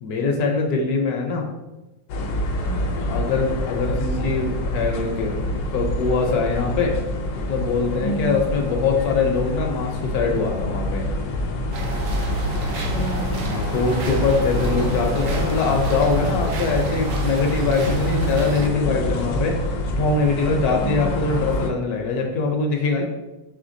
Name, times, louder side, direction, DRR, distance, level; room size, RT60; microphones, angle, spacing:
voice 1, 0.0-1.5 3.1-5.4 5.7-7.0 7.4-11.1 13.4-19.6 20.0-23.0, left 4 dB, 70° left, 2 dB, 1.0 m, -23 dB
sound 1, 2.1-21.7, left 1 dB, 90° left, 1.2 m, -26 dB
voice 2, 2.6-3.2 8.0-8.4 12.4-13.5 20.8-21.1, right 2 dB, 55° right, -3 dB, 0.8 m, -30 dB
sound 2, 11.7-18.7, right 2 dB, 80° right, 1.2 m, -31 dB
4.9 x 3.2 x 2.6 m, 1.0 s
omnidirectional pair, 1.9 m